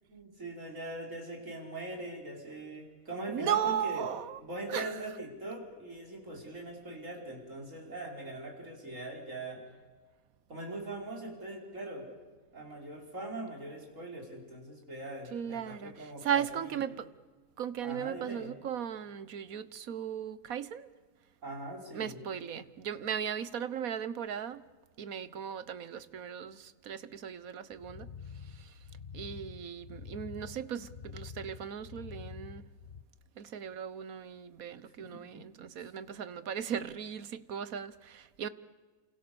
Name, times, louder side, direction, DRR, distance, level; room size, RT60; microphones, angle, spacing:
voice 1, 0.1-4.1 4.4-9.6 10.5-12.1 12.5-16.8 17.8-18.5 21.4-22.2 35.0-35.4 35.8-35.9, right 2 dB, 65° right, 5.5 m, -42 dB
voice 2, 3.3-4.4 4.7-4.9 15.3-17.1 17.6-20.9 21.9-24.6 25.0-28.1 28.5-28.7 29.1-32.6 33.4-38.5, right 8 dB, 85° right, 1.5 m, -37 dB
sound 1, 27.7-33.0, left 6 dB, 45° left, 1.1 m, -47 dB
29.5 x 27.0 x 7.0 m
omnidirectional pair, 1.4 m